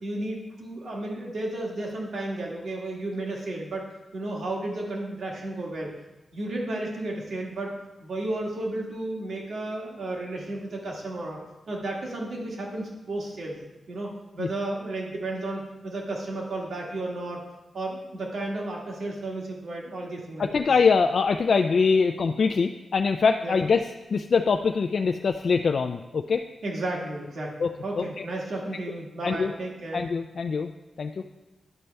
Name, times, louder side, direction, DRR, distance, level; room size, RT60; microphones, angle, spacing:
voice 1, 0.0-5.9 6.3-7.7 8.0-11.4 11.7-13.6 13.9-17.4 17.7-20.7 23.4-23.6 26.6-30.1, right 2 dB, 75° right, -1 dB, 1.7 m, -33 dB
voice 2, 20.4-23.8 24.1-26.4 27.6-27.7 28.0-28.2 29.2-29.5 29.9-30.7 31.0-31.2, left 5 dB, 60° left, 5 dB, 0.3 m, -23 dB
11.0 x 5.3 x 3.4 m, 1.0 s
wide cardioid pair, 110°, 0 cm